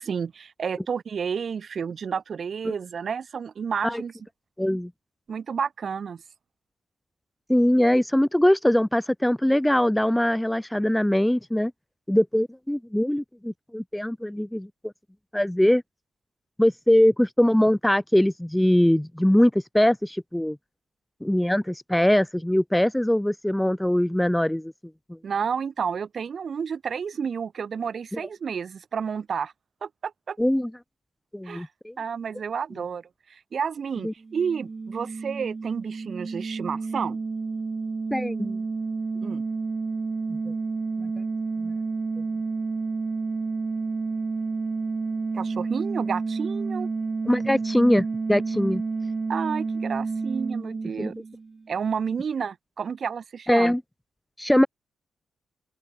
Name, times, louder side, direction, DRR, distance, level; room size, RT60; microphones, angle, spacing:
voice 1, 0.0-4.1 5.3-6.2 25.2-29.5 29.8-30.4 31.4-31.7 32.0-33.0 33.3-37.2 39.2-39.4 45.3-46.9 49.3-51.1 51.7-53.7, right 6 dB, 45° right, 1.6 m, -30 dB
voice 2, 4.6-4.9 7.5-11.7 12.1-14.7 15.3-15.8 16.6-20.6 21.2-24.7 25.1-25.2 28.1-28.2 30.4-30.7 31.3-31.9 34.0-34.1 38.1-38.6 40.3-40.5 41.0-41.1 41.6-41.7 47.3-48.8 51.0-51.1 53.5-53.8 54.4-54.7, left 1 dB, 5° left, 0.6 m, -22 dB
sound 1, 34.2-51.7, right 4 dB, 30° right, 1.2 m, -30 dB
open air
wide cardioid pair, 145°, 0 cm